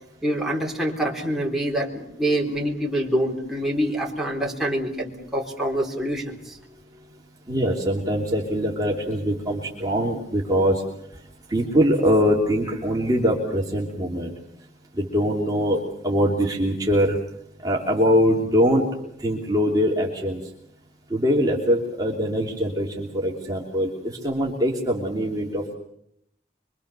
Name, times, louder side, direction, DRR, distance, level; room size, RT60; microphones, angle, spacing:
voice 1, 0.2-6.6, right 1 dB, ahead, -2 dB, 4.1 m, -26 dB
voice 2, 7.5-10.8 11.5-14.3 14.9-17.2 17.6-20.4 21.1-25.7, equal, 20° right, -2 dB, 3.1 m, -23 dB
25.0 x 24.5 x 6.8 m, 0.73 s
head